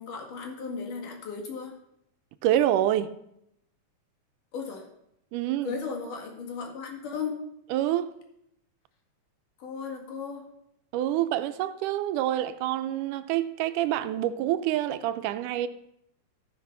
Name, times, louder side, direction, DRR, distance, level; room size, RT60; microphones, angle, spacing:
voice 1, 0.0-1.8 4.5-4.9 5.6-7.4 9.6-10.5, left 5 dB, 80° left, 3.4 m, -36 dB
voice 2, 2.4-3.1 5.3-5.7 7.7-8.1 10.9-15.7, right 12 dB, 85° right, 2.1 m, -27 dB
14.0 x 5.9 x 5.8 m
omnidirectional pair, 3.6 m